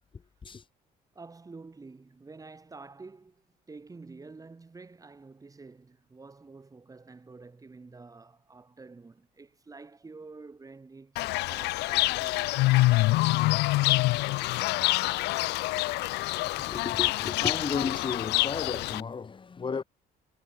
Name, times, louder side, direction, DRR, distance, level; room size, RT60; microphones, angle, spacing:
voice 1, 1.1-11.2 11.5-12.7, right 3 dB, 20° right, 2.6 m, -49 dB
Fowl / Bird, 11.2-19.0, left 21 dB, 80° left, 0.5 m, -26 dB
voice 2, 16.4-19.8, left 5 dB, 30° left, 3.2 m, -34 dB
cardioid pair, 110°, 17 cm